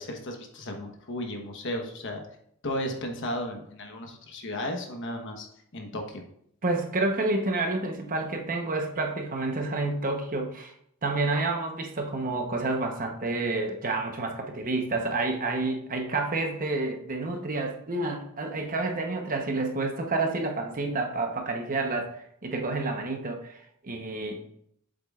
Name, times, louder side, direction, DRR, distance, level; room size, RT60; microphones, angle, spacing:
voice 1, 0.0-2.2 2.6-5.5 5.7-6.2, left 1 dB, 55° left, 3 dB, 1.1 m, -34 dB
voice 2, 6.6-10.7 11.0-24.5, right 2 dB, 40° right, 3 dB, 1.0 m, -29 dB
7.7 x 7.4 x 2.4 m, 0.69 s
head